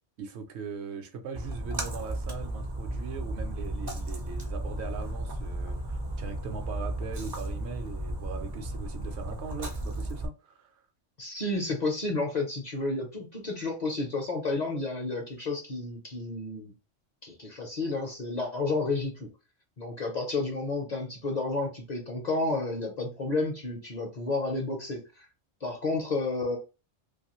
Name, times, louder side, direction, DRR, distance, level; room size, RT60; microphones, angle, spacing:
voice 1, 0.2-10.8, right 5 dB, 70° right, 0.8 m, -40 dB
Splash splatter, 1.3-10.2, right 1 dB, 35° right, 0.4 m, -34 dB
voice 2, 11.2-16.7 17.2-19.3 19.8-25.3 25.6-26.6, left 3 dB, 50° left, 0.6 m, -31 dB
2.6 x 2.4 x 2.9 m
omnidirectional pair, 1.2 m